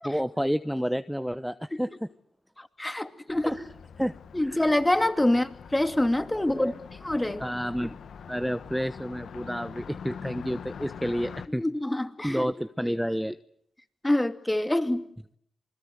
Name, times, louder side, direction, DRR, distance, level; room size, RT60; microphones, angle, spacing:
voice 1, 0.0-2.1 3.4-3.6 4.0-4.1 4.4-4.6 6.5-6.7 7.4-8.0 8.3-11.6 12.2-13.4, equal, ahead, 1.0 m, -30 dB
voice 2, 2.6-3.6 4.3-6.7 7.0-7.4 11.6-12.4 12.9-13.0 14.0-15.0, left 1 dB, 15° left, 2.7 m, -26 dB
Car passing by, 3.3-11.5, left 6 dB, 75° left, 1.3 m, -44 dB
28.0 x 21.0 x 8.0 m
supercardioid pair, 40°, 0 cm